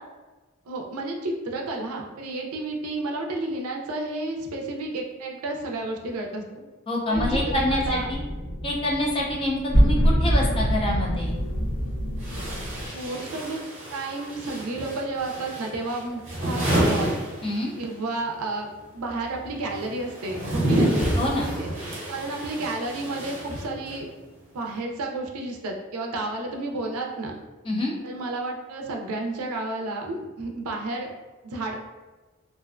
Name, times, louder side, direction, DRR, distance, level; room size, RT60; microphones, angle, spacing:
voice 1, 0.7-6.6 7.1-8.1 12.9-13.6 13.9-17.2 17.8-18.7 18.9-20.9 21.4-21.7 22.1-24.1 24.5-27.3 28.0-31.1 31.4-31.7, right 2 dB, 80° right, 1 dB, 0.4 m, -31 dB
voice 2, 6.9-8.2 8.6-11.3 17.4-17.7 21.2-21.5 27.6-28.0, left 1 dB, 25° left, -3 dB, 0.4 m, -26 dB
sound 1, 7.1-12.9, equal, 55° left, 0.7 m, -25 dB
sound 2, 11.3-11.4 12.2-18.0 18.2-24.1, right 1 dB, 30° right, 0.7 m, -29 dB
2.4 x 2.1 x 2.4 m, 1.2 s
head